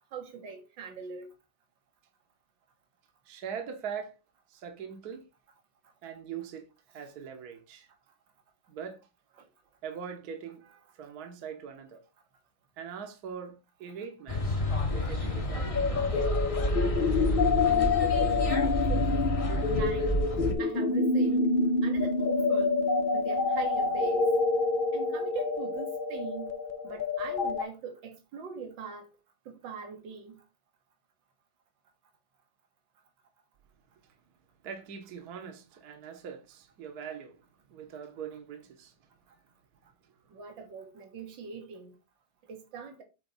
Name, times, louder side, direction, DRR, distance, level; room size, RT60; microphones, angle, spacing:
voice 1, 0.1-1.3 9.4-9.5 17.6-19.3 19.7-20.1 20.6-21.5 21.8-22.8 23.1-24.3 24.9-26.5 26.8-29.1 29.5-30.4 40.3-41.9 42.5-43.0, right 6 dB, 80° right, 2.1 m, -41 dB
voice 2, 3.3-4.2 4.5-5.3 6.0-6.7 6.9-7.9 8.7-9.0 9.8-12.0 12.8-16.1 34.6-37.4 37.7-38.9, right 7 dB, 60° right, 1.5 m, -42 dB
sound 1, 14.3-20.5, equal, 25° left, 0.9 m, -29 dB
sound 2, 15.7-27.6, left 4 dB, 55° left, 0.5 m, -27 dB
8.0 x 4.0 x 4.1 m
omnidirectional pair, 2.0 m